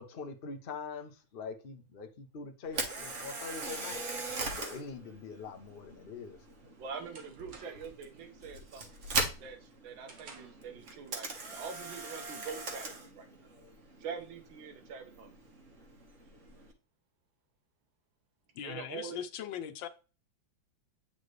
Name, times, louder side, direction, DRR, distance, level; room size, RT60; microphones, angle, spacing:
voice 1, 0.0-4.0 4.5-6.4, left 5 dB, 60° left, 5 dB, 0.5 m, -44 dB
Camera, 2.6-16.7, right 3 dB, 45° right, 1.4 m, -41 dB
sound 1, 6.2-8.0 8.4-8.8 9.2-10.7, right 4 dB, 70° right, 1.9 m, -55 dB
voice 2, 6.8-8.9 9.4-13.3 14.0-15.4 18.6-19.2, right 6 dB, 85° right, 7 dB, 1.8 m, -44 dB
voice 3, 18.5-19.9, left 9 dB, 80° left, 10 dB, 1.5 m, -40 dB
8.6 x 4.3 x 3.2 m, 0.33 s
omnidirectional pair, 2.1 m